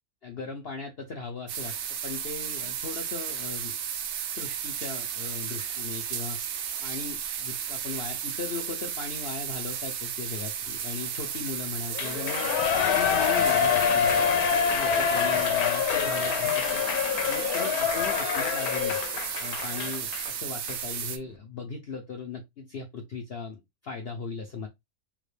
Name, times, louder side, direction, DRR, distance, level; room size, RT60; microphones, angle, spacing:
voice 1, 0.2-3.8 4.3-6.4 6.8-12.5 12.8-14.2 14.7-16.9 17.2-19.0 19.4-24.7, left 5 dB, 55° left, 0.8 m, -38 dB
sound 1, 1.5-21.2, right 8 dB, 65° right, 0.7 m, -34 dB
Shout / Cheering, 12.0-20.3 20.7-20.8, left 7 dB, 80° left, 1.1 m, -26 dB
3.5 x 2.5 x 3.3 m
omnidirectional pair, 1.5 m